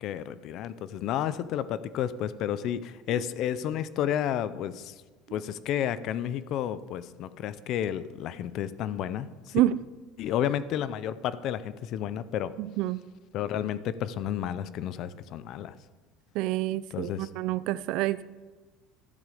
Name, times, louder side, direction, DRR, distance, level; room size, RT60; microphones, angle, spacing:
voice 1, 0.0-4.9 5.3-9.6 10.2-12.5 13.3-15.7 16.9-17.3, left 10 dB, 45° left, 0.5 m, -31 dB
voice 2, 12.6-13.1 16.3-18.2, right 15 dB, 55° right, 0.4 m, -28 dB
13.5 x 7.8 x 5.0 m
cardioid pair, 160°, 0 cm